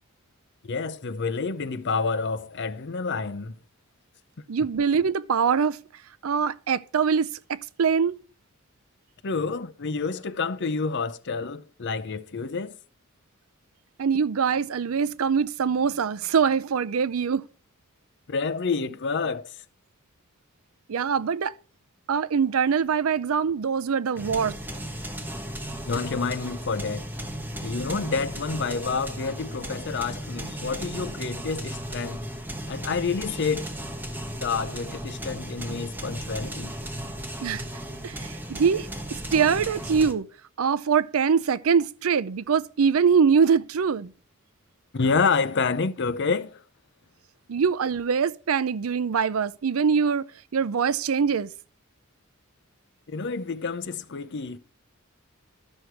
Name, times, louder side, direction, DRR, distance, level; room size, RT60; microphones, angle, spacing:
voice 1, 0.6-3.6 9.2-12.8 18.3-19.6 25.9-27.0 27.6-32.2 32.7-33.7 34.4-36.7 44.9-46.6 53.1-54.6, left 4 dB, 55° left, 0.7 m, -28 dB
voice 2, 4.5-5.8 6.2-8.2 14.0-17.4 20.9-21.5 22.1-24.6 37.4-37.6 38.0-40.3 40.6-44.1 47.5-50.3 50.5-51.5, right 6 dB, 80° right, 0.5 m, -23 dB
sound 1, 24.2-40.1, right 1 dB, 10° right, 1.2 m, -35 dB
13.0 x 6.4 x 4.6 m
head